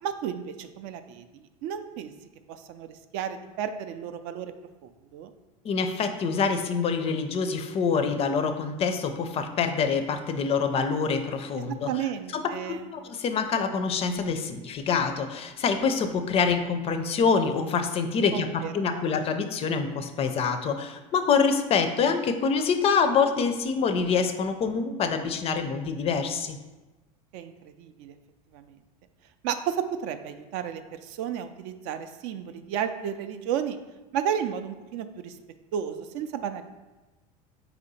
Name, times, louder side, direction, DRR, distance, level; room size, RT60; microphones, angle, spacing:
voice 1, 0.0-2.1 2.5-4.5 4.8-5.3 11.9-12.9 18.3-19.1 27.3-28.1 28.5-28.8 29.4-33.8 34.1-35.4 35.7-36.6, right 9 dB, 65° right, 9 dB, 0.4 m, -33 dB
voice 2, 5.6-11.9 12.3-26.6, left 5 dB, 30° left, 8 dB, 0.4 m, -26 dB
4.2 x 2.7 x 4.0 m, 1.1 s
supercardioid pair, 105°, 19 cm